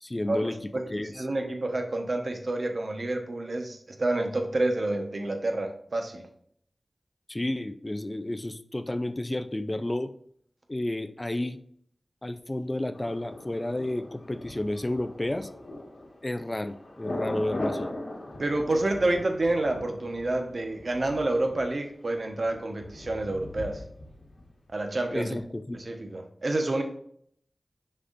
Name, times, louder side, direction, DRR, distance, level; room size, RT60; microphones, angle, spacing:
voice 1, 0.0-1.2 7.3-10.1 10.7-11.6 12.2-15.5 16.2-17.9 25.1-25.8, left 1 dB, 25° left, 10 dB, 0.4 m, -31 dB
voice 2, 1.1-6.2 18.4-23.8 24.7-25.4 25.7-26.8, right 2 dB, 60° right, 4 dB, 1.1 m, -28 dB
Thunder, 12.9-24.8 25.1-25.2, left 1 dB, 80° left, 1.6 m, -40 dB
6.6 x 5.8 x 2.6 m, 0.65 s
wide cardioid pair, 75°, 0 cm